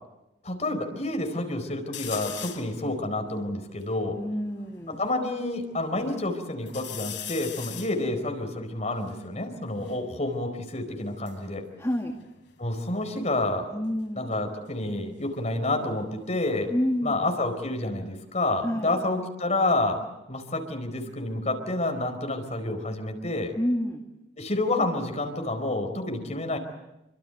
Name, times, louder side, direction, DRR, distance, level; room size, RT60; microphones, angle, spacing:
voice 1, 0.4-4.2 4.9-11.6 12.6-13.8 14.1-16.7 17.0-20.0 20.3-23.5 24.4-26.6, left 2 dB, 35° left, 5 dB, 4.5 m, -29 dB
sound 1, 1.9-2.8 3.3-3.4 3.6-5.2 5.7-6.3 6.7-10.0 11.0-12.9 13.1-13.6 15.2-17.8 18.2-19.0, left 11 dB, 70° left, 3.8 m, -43 dB
voice 2, 4.1-5.0 11.8-12.2 13.7-14.3 16.7-17.2 18.6-19.0 23.6-24.0, equal, 15° left, 2 dB, 2.1 m, -28 dB
28.0 x 25.0 x 8.1 m, 0.93 s
head